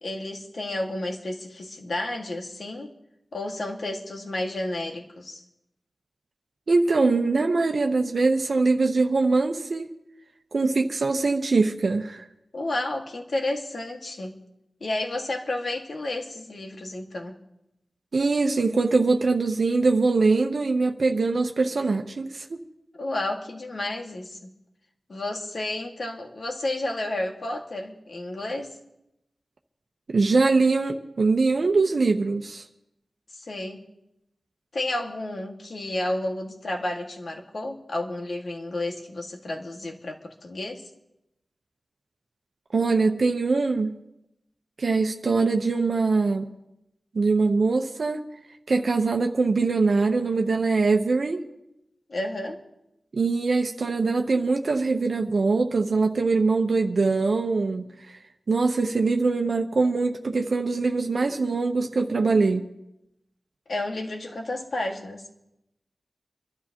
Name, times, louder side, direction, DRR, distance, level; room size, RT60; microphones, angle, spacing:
voice 1, 0.0-2.9 3.3-5.4 12.5-14.4 14.8-17.3 22.9-24.5 25.1-28.8 33.3-33.8 34.7-40.9 52.1-52.6 63.7-65.2, left 1 dB, 65° left, 1 dB, 1.9 m, -31 dB
voice 2, 6.7-9.9 10.5-12.2 18.1-22.6 30.1-32.6 42.7-43.9 44.8-46.5 47.1-48.2 48.7-51.4 53.1-58.2 58.5-62.6, right 3 dB, 65° right, 3 dB, 0.9 m, -23 dB
26.0 x 12.5 x 3.0 m, 0.86 s
wide cardioid pair, 75°, 0 cm